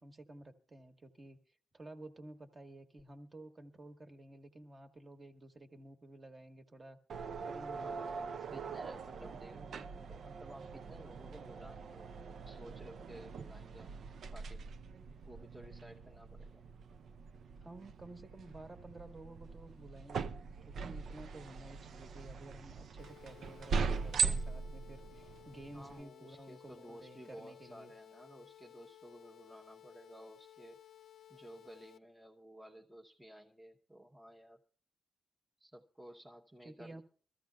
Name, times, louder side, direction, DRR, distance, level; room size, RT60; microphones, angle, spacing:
voice 1, 0.0-1.4 1.7-7.0 7.4-8.4 17.6-20.4 20.7-27.9 36.6-37.0, right 1 dB, 30° right, 1.3 m, -53 dB
sound 1, 7.1-26.0, right 5 dB, 70° right, 0.5 m, -41 dB
voice 2, 7.7-14.0 14.3-14.7 15.2-16.6 25.7-30.8 31.3-34.6 35.6-37.0, right 1 dB, 5° right, 0.9 m, -54 dB
sound 2, 23.0-32.0, left 12 dB, 75° left, 0.7 m, -58 dB
23.5 x 14.0 x 2.3 m
wide cardioid pair, 140°, 0 cm